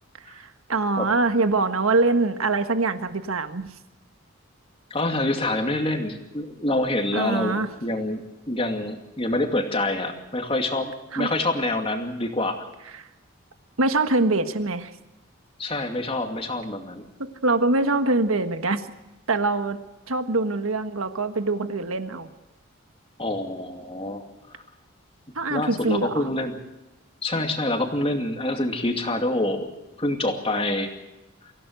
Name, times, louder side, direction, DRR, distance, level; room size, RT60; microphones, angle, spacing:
voice 1, 0.3-3.7 7.1-7.7 11.1-11.3 13.0-13.1 13.8-14.9 17.2-18.8 19.3-19.8 20.1-22.3 25.3-26.2, right 3 dB, 80° right, 9 dB, 1.5 m, -24 dB
voice 2, 4.9-8.2 8.5-12.7 15.6-17.1 23.2-24.2 24.5-24.6 25.5-26.6 27.2-29.7 30.0-30.9, left 1 dB, 25° left, 4 dB, 2.5 m, -26 dB
25.0 x 16.5 x 8.0 m, 1.0 s
head